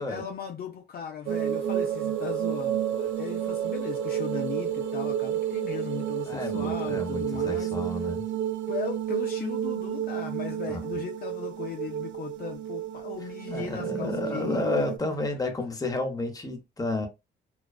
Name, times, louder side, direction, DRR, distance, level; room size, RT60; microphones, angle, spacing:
voice 1, 0.0-7.7 8.7-14.9, left 8 dB, 50° left, 0.4 m, -38 dB
sound 1, 1.3-15.0, right 10 dB, 70° right, 0.4 m, -31 dB
voice 2, 6.3-8.2 10.7-10.8 13.5-17.1, left 2 dB, 20° left, 0.8 m, -31 dB
2.3 x 2.3 x 2.3 m
cardioid pair, 90°, 20 cm